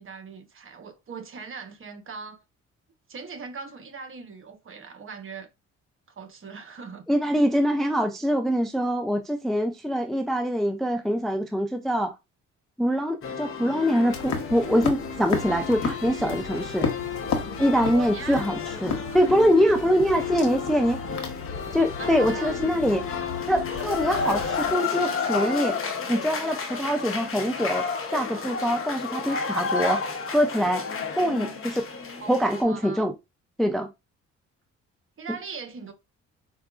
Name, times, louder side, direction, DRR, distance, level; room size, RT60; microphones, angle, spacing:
voice 1, 0.0-2.4 3.1-5.5 6.1-7.0 17.8-18.5 19.1-19.3 22.0-22.7 31.2-31.6 32.2-33.1 35.2-35.9, right 5 dB, 45° right, 1.0 m, -39 dB
voice 2, 7.1-12.2 12.8-16.9 17.6-21.0 21.7-23.0 23.5-25.8 26.1-27.9 28.1-30.0 30.3-30.8 31.2-31.8 32.3-33.1 33.6-33.9, equal, ahead, 0.4 m, -24 dB
sound 1, 13.2-32.6, left 5 dB, 45° left, 0.9 m, -32 dB
sound 2, 14.1-24.7, left 5 dB, 65° left, 1.0 m, -34 dB
4.5 x 2.3 x 2.4 m
cardioid pair, 90°, 30 cm